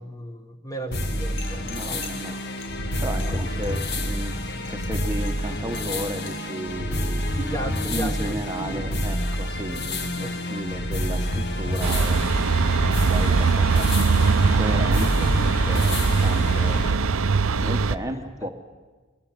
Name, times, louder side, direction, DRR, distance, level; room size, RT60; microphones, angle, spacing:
voice 1, 0.0-2.4 3.2-3.5 7.4-8.9 10.2-10.4 18.1-18.5, right 1 dB, 15° left, 7 dB, 1.4 m, -35 dB
sound 1, 0.9-16.9, left 1 dB, 50° left, 1.7 m, -28 dB
sound 2, 1.4-6.6, left 4 dB, 65° left, 2.5 m, -45 dB
voice 2, 1.6-2.4 3.0-7.3 7.9-12.2 13.0-13.9 14.5-17.0 17.6-18.5, right 1 dB, 15° right, 5 dB, 1.0 m, -34 dB
sound 3, 11.8-18.0, right 4 dB, 80° right, 0.7 m, -21 dB
22.0 x 21.5 x 7.4 m, 1.3 s
head